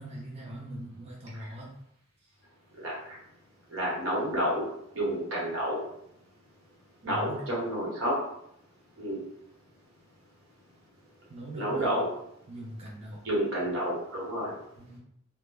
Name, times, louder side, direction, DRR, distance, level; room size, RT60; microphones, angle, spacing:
voice 1, 0.0-1.8 7.1-7.4 11.3-12.1 12.5-13.3 14.8-15.0, right 1 dB, 30° right, -4 dB, 0.4 m, -41 dB
voice 2, 3.7-4.6 4.9-5.8 7.0-8.1 9.0-9.2 11.5-12.1 13.2-14.5, equal, 90° right, -5 dB, 1.1 m, -29 dB
2.1 x 2.0 x 3.1 m, 0.75 s
head